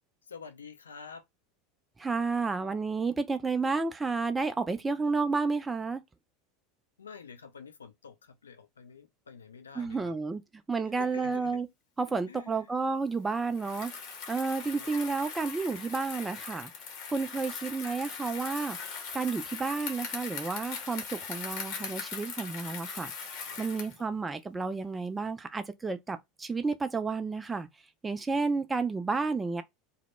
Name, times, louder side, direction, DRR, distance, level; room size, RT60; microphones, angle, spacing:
voice 1, 0.2-1.2 7.0-10.1 10.7-11.6 12.3-12.7 14.5-14.9 17.4-17.5 23.5-23.7, left 6 dB, 80° left, 0.4 m, -48 dB
voice 2, 2.0-6.0 9.8-10.4 10.7-11.7 12.0-18.8 19.1-27.7 28.0-29.6, right 4 dB, 15° right, 0.3 m, -31 dB
Bicycle, 13.5-24.0, left 6 dB, 55° left, 0.8 m, -40 dB
2.1 x 2.0 x 2.9 m
figure-of-eight pair, 80°, 0 cm